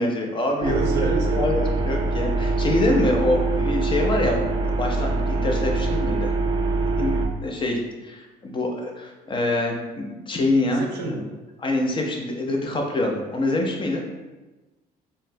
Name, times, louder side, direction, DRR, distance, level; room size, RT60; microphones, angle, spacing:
voice 1, 0.0-1.1 1.4-4.4 4.7-6.3 7.0-7.1 7.4-10.8 11.6-14.0, left 2 dB, 30° left, 1 dB, 0.6 m, -25 dB
sound 1, 0.6-7.3, right 3 dB, 30° right, 0.4 m, -23 dB
voice 2, 0.6-1.5 10.6-11.2, right 2 dB, 90° right, 1 dB, 0.7 m, -28 dB
4.0 x 2.1 x 2.6 m, 1.1 s
cardioid pair, 110°, 17 cm